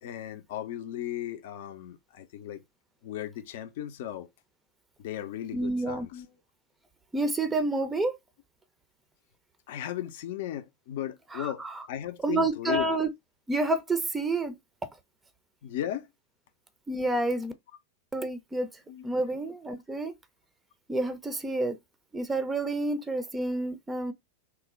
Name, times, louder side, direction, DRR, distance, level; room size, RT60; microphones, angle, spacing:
voice 1, 0.0-2.6 3.0-4.3 5.0-6.3 9.7-12.9 15.6-16.1 18.9-19.0, left 12 dB, 50° left, 0.5 m, -36 dB
voice 2, 5.5-6.1 7.1-8.2 11.3-11.9 12.2-13.1 13.5-14.6 16.9-17.5 18.1-18.7 19.0-20.1 20.9-21.8 22.1-24.1, right 2 dB, 10° right, 0.5 m, -29 dB
3.0 x 2.1 x 3.5 m
figure-of-eight pair, 90°, 0 cm